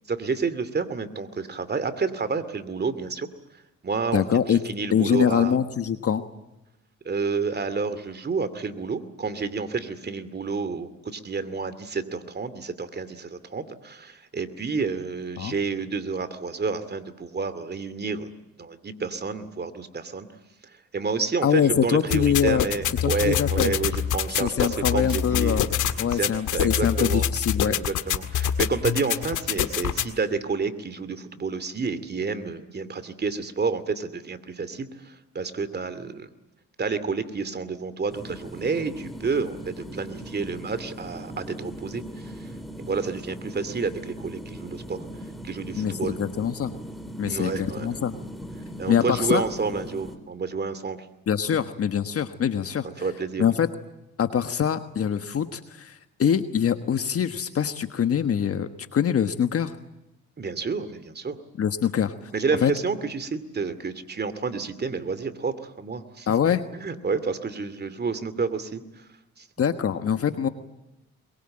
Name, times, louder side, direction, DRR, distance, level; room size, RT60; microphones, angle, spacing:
voice 1, 0.1-3.3 3.8-5.6 7.0-18.3 18.6-20.3 20.9-25.7 26.1-27.3 27.6-36.3 36.8-42.5 42.8-45.0 45.4-46.2 47.2-47.9 48.8-51.0 53.0-53.4 60.4-61.4 62.3-66.3 66.7-69.0 69.4-69.5, right 4 dB, 35° right, 13 dB, 2.5 m, -29 dB
voice 2, 4.1-4.6 4.9-6.2 15.4-15.5 21.4-22.6 23.0-23.7 24.4-25.7 26.0-27.8 45.7-46.7 47.2-48.1 48.9-49.4 51.3-53.1 53.4-53.7 54.2-59.8 61.6-62.3 62.6-62.7 66.3-66.6 69.6-70.5, left 8 dB, 50° left, 9 dB, 1.4 m, -24 dB
sound 1, 22.1-30.1, left 9 dB, 80° left, 1.9 m, -26 dB
sound 2, 38.1-50.2, equal, ahead, 3.3 m, -39 dB
22.5 x 22.5 x 8.9 m, 0.94 s
cardioid pair, 90°, 30 cm